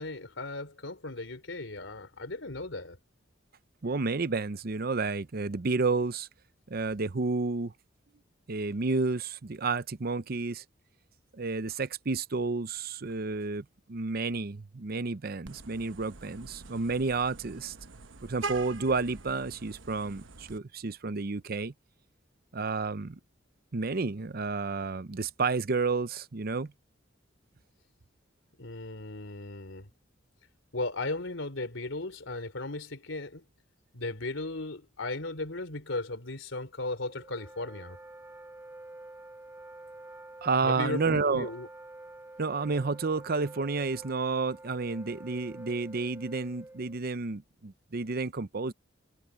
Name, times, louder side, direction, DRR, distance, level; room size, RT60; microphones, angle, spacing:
voice 1, 0.0-3.0 28.6-29.9 30.7-33.4 33.9-38.0 40.6-41.7, left 2 dB, 80° left, 3.3 m, -36 dB
voice 2, 3.8-6.3 6.7-7.7 8.5-10.6 11.3-17.7 18.2-21.7 22.5-23.2 23.7-26.7 40.4-41.5 42.4-48.7, right 4 dB, 50° right, 0.7 m, -31 dB
Vehicle horn car horn honking, 15.4-20.6, right 3 dB, 75° right, 1.1 m, -43 dB
Wind instrument woodwind instrument, 37.1-47.0, right 2 dB, 15° right, 2.6 m, -48 dB
head